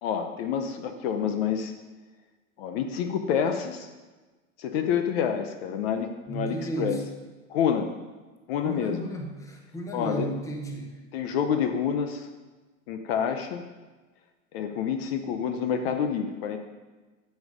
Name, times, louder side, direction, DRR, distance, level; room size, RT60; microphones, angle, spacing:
voice 1, 0.0-1.7 2.6-3.9 4.6-7.0 7.5-7.9 8.5-9.0 9.9-10.3 11.1-12.3 12.9-13.7 14.5-16.6, left 7 dB, 50° left, 7 dB, 0.8 m, -28 dB
voice 2, 6.3-7.1 8.6-11.0, right 1 dB, 10° left, 2 dB, 1.1 m, -34 dB
10.5 x 7.3 x 5.0 m, 1.3 s
supercardioid pair, 145°, 39 cm